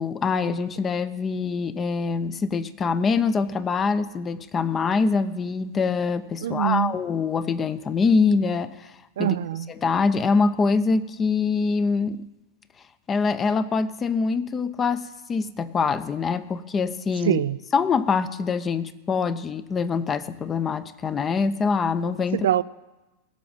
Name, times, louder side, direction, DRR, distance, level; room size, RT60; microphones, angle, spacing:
voice 1, 0.0-8.9 9.2-9.4 9.7-12.2 13.1-17.4 17.7-22.5, left 5 dB, 25° left, 0.8 m, -24 dB
voice 2, 6.4-6.9 9.2-9.7 17.3-17.6 22.3-22.6, right 12 dB, 70° right, 0.4 m, -23 dB
16.5 x 7.0 x 9.2 m
hypercardioid pair, 95°, 0 cm